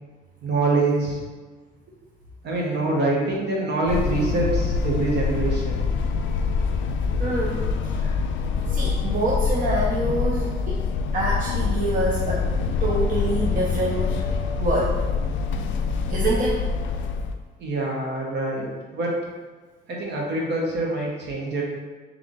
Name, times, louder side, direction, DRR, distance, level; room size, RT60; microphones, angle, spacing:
voice 1, 0.4-1.2 2.4-5.8 17.6-19.2 19.9-21.6, right 2 dB, 60° right, -2 dB, 1.2 m, -25 dB
sound 1, 3.9-17.3, left 5 dB, 75° left, 0.4 m, -25 dB
voice 2, 7.2-8.2 8.7-10.8 11.1-12.5 12.8-14.2 14.6-14.9 16.1-16.6, right 2 dB, 40° right, -4 dB, 0.7 m, -26 dB
3.4 x 3.4 x 3.9 m, 1.3 s
cardioid pair, 90°, 20 cm